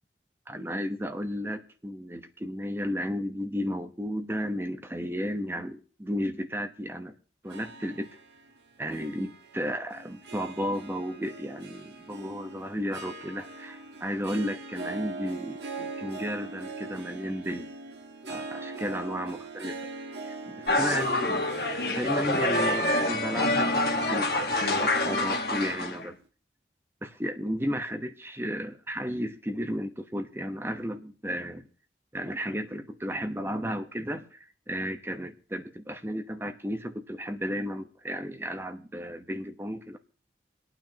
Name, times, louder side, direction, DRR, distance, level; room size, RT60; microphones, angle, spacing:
voice 1, 0.5-7.2 7.4-8.1 8.8-17.7 18.3-19.9 20.2-24.3 24.6-26.2 27.0-31.7 32.1-40.0, equal, 15° right, 6 dB, 1.0 m, -33 dB
Harp, 7.4-25.9, right 3 dB, 80° right, 1.5 m, -42 dB
sound 1, 20.7-26.0, left 2 dB, 60° left, 1.5 m, -26 dB
26.5 x 9.1 x 2.9 m, 0.40 s
head